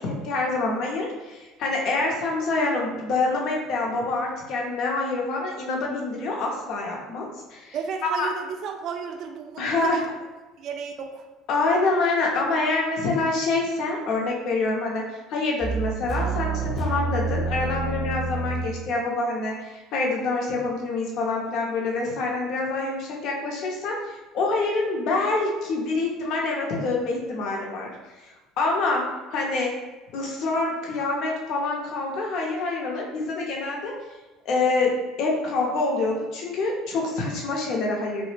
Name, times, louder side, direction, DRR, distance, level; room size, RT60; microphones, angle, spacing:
voice 1, 0.0-7.7 8.0-8.3 9.6-10.0 11.5-15.0 15.3-27.9 28.2-28.3 28.6-29.0 29.3-29.7 30.1-33.9 34.5-34.9 35.2-38.3, left 3 dB, 60° left, -1 dB, 0.6 m, -26 dB
voice 2, 7.7-10.1 10.6-11.2, right 6 dB, 55° right, 4 dB, 0.4 m, -33 dB
sound 1, 15.6-18.8, right 3 dB, 15° right, 0.7 m, -28 dB
2.1 x 2.0 x 3.2 m, 1.2 s
hypercardioid pair, 75°, 0 cm